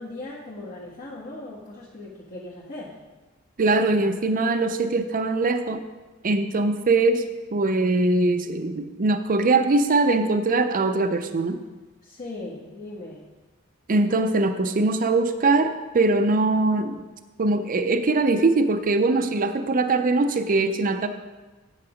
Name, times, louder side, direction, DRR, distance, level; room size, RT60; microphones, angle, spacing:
voice 1, 0.0-3.0 6.5-6.6 12.0-13.2, left 2 dB, 45° left, -8 dB, 1.5 m, -38 dB
voice 2, 3.6-5.8 6.2-11.6 13.9-17.0 17.4-21.1, right 3 dB, 40° right, 8 dB, 0.5 m, -22 dB
8.5 x 7.2 x 5.0 m, 1.2 s
head